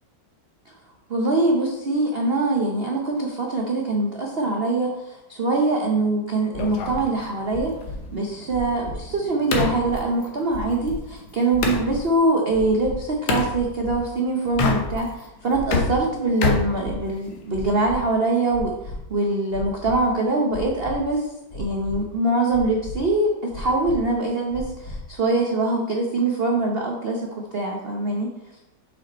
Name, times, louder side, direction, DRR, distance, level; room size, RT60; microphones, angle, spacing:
voice 1, 1.1-7.7 8.1-28.3, right 2 dB, 85° right, 0 dB, 0.5 m, -23 dB
sound 1, 6.5-7.0 7.5-8.0 8.5-9.0 9.5-10.0 10.5-11.0 11.5-12.0 12.5-12.9 13.5-13.9 14.5-15.0 15.5-16.0 16.5-16.9 17.5-18.0 18.5-19.0 19.5-19.9 20.5-20.9 21.5-22.0 22.5-22.9 23.5-24.0 24.5-25.0, left 3 dB, 35° left, 1.5 m, -35 dB
sound 2, 6.6-11.9 13.3-13.5 14.5-15.2 15.5-17.5, left 3 dB, 90° left, 1.8 m, -27 dB
6.4 x 5.0 x 4.1 m, 0.89 s
omnidirectional pair, 2.2 m